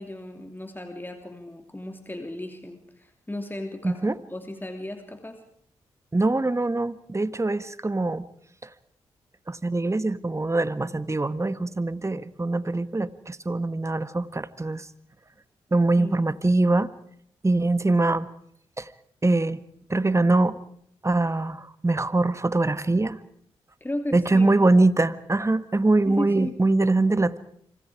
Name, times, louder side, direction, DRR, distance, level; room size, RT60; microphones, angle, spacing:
voice 1, 0.0-5.4 16.0-16.2 23.8-24.5 26.0-26.6, left 1 dB, 15° left, 5 dB, 2.9 m, -35 dB
voice 2, 6.1-8.3 9.5-14.8 15.7-16.9 17.4-18.3 18.8-18.9 19.2-19.6 19.9-20.6 21.0-23.2 24.1-27.4, right 2 dB, 25° right, 14 dB, 1.5 m, -23 dB
27.5 x 25.0 x 4.8 m, 0.64 s
supercardioid pair, 40°, 12 cm